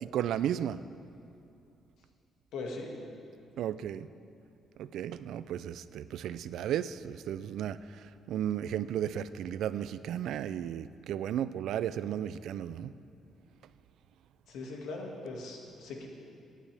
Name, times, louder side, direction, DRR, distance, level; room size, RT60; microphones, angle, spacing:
voice 1, 0.0-0.8 3.6-4.1 4.8-7.8 8.3-12.9, right 10 dB, 80° right, 15 dB, 0.3 m, -34 dB
voice 2, 2.5-3.0 14.5-16.1, left 3 dB, 85° left, 0 dB, 1.9 m, -40 dB
18.5 x 9.5 x 3.4 m, 2.5 s
cardioid pair, 90°, 0 cm